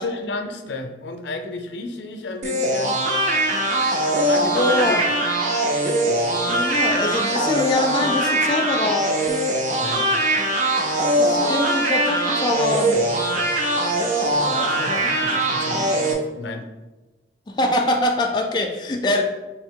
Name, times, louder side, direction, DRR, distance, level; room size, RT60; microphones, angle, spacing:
voice 1, 0.0-3.0 4.2-5.0 9.8-10.0 14.5-16.6, left 3 dB, 85° left, 5 dB, 0.5 m, -31 dB
sound 1, 2.4-16.1, right 1 dB, 45° right, 0.5 m, -21 dB
voice 2, 4.5-5.0 6.5-9.0 11.2-13.0 17.6-19.2, left 1 dB, 25° left, 1 dB, 0.3 m, -23 dB
3.5 x 2.8 x 3.6 m, 1.1 s
head